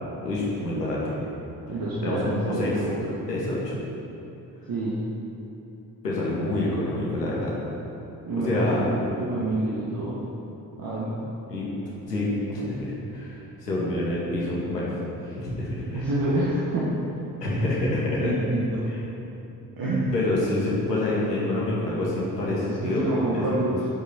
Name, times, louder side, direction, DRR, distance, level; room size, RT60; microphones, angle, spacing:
voice 1, 0.2-1.1 2.0-2.7 3.3-3.8 6.0-7.5 8.3-8.8 11.5-11.7 12.1-12.8 13.1-14.9 15.3-16.0 17.4-18.3 20.1-23.0 23.3-23.9, left 2 dB, 85° left, -5 dB, 2.3 m, -27 dB
voice 2, 1.7-3.1 4.7-5.0 8.3-10.2 10.8-11.2 15.9-16.9 17.6-18.9 19.8-20.2 21.3-21.5 22.4-23.9, right 1 dB, 45° right, -6 dB, 2.3 m, -28 dB
20.0 x 8.5 x 4.7 m, 2.9 s
figure-of-eight pair, 45°, 47 cm